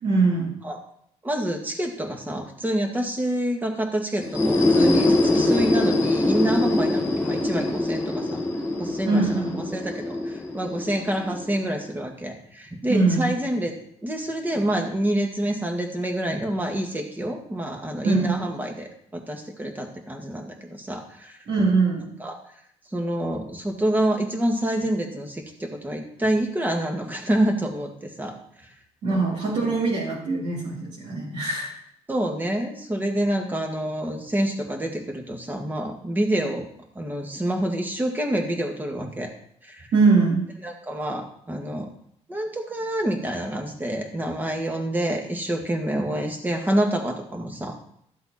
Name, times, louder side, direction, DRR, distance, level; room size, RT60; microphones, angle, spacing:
voice 1, 0.0-0.6 9.0-9.8 12.9-13.4 18.0-18.4 21.5-22.1 29.0-31.7 39.9-40.5, right 3 dB, 70° right, -6 dB, 3.1 m, -22 dB
voice 2, 1.2-8.4 8.8-13.7 14.0-18.9 19.3-21.4 22.2-22.4 22.9-28.7 29.1-29.2 32.1-36.6 37.0-39.3 39.6-39.9 40.6-41.9 42.3-47.8, right 1 dB, 15° right, 2 dB, 1.9 m, -27 dB
sound 1, 4.2-11.9, left 2 dB, 20° left, 2.0 m, -23 dB
13.5 x 7.7 x 4.2 m, 0.68 s
cardioid pair, 140°, 12 cm